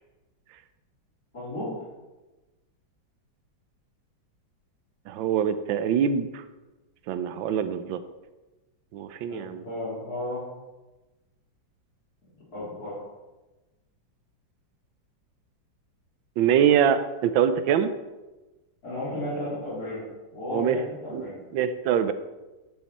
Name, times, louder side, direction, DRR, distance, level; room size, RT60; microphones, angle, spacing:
voice 1, 1.3-1.7 9.3-10.4 12.5-12.9 18.8-20.0 20.3-21.3, left 1 dB, 50° left, -12 dB, 3.6 m, -33 dB
voice 2, 5.1-6.4 7.1-8.0 8.9-9.6 16.4-17.9 20.5-20.8 21.1-22.1, right 8 dB, 90° right, 11 dB, 1.4 m, -24 dB
12.0 x 5.8 x 4.2 m, 1.1 s
omnidirectional pair, 2.1 m